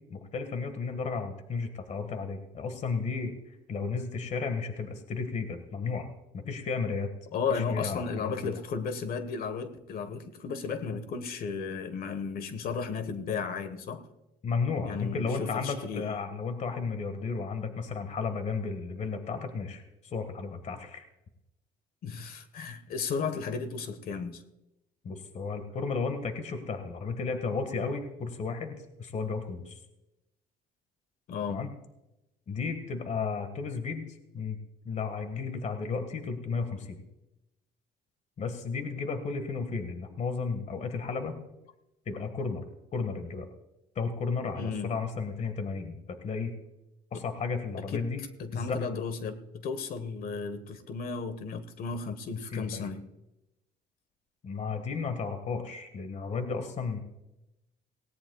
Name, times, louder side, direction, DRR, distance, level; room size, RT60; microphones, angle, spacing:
voice 1, 0.1-6.1 6.3-7.1 7.5-8.6 14.4-21.1 25.0-29.8 31.5-31.7 32.5-34.6 34.8-37.0 38.4-41.4 42.0-42.7 42.9-43.5 43.9-46.5 47.1-48.2 48.5-48.8 52.5-52.9 54.4-57.0, left 4 dB, 45° left, 8 dB, 1.7 m, -33 dB
voice 2, 7.3-14.1 14.8-16.1 22.0-24.4 31.3-31.7 44.5-44.9 47.1-47.2 47.9-48.1 48.4-53.0, left 5 dB, 60° left, 11 dB, 1.4 m, -34 dB
18.5 x 17.5 x 2.4 m, 0.92 s
cardioid pair, 110°, 17 cm